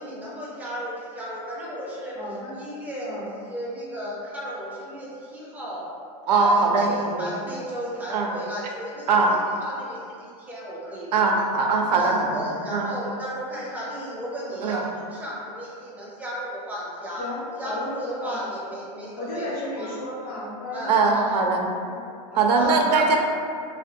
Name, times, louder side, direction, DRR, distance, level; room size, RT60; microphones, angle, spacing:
voice 1, 0.0-2.2 2.5-5.9 6.4-9.3 9.6-11.4 12.0-17.3 17.6-19.5 19.8-19.9 20.7-21.4 22.5-23.0, equal, 10° right, -6 dB, 0.5 m, -34 dB
voice 2, 2.1-2.5 3.0-3.3 17.2-17.9 18.2-18.4 19.1-21.1 21.9-22.0 22.3-22.5 22.7-22.9, left 1 dB, 70° left, -5 dB, 0.8 m, -34 dB
voice 3, 6.3-7.3 8.1-8.3 9.1-9.4 11.1-12.9 14.6-14.9 20.9-21.7 22.3-23.2, right 3 dB, 90° right, 1 dB, 0.4 m, -21 dB
2.5 x 2.1 x 2.5 m, 2.4 s
supercardioid pair, 130°, 20 cm